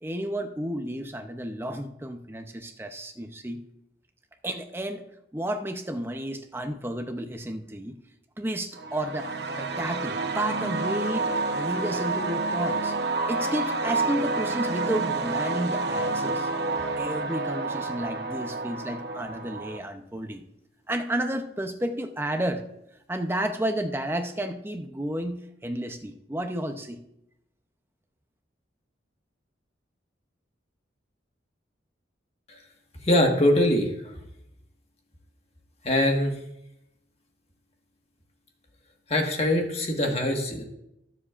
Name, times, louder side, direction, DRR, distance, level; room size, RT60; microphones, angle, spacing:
voice 1, 0.0-3.6 4.4-5.0 5.3-8.0 8.4-9.3 9.6-12.9 13.3-16.5 17.0-20.4 20.9-22.6 23.1-27.0, right 1 dB, 10° right, 6 dB, 0.6 m, -32 dB
sound 1, 8.7-19.8, right 3 dB, 60° right, 0.9 m, -29 dB
voice 2, 33.0-34.2 35.8-36.4 39.1-40.6, left 1 dB, 35° left, 2 dB, 1.5 m, -23 dB
19.5 x 7.3 x 2.5 m, 0.82 s
head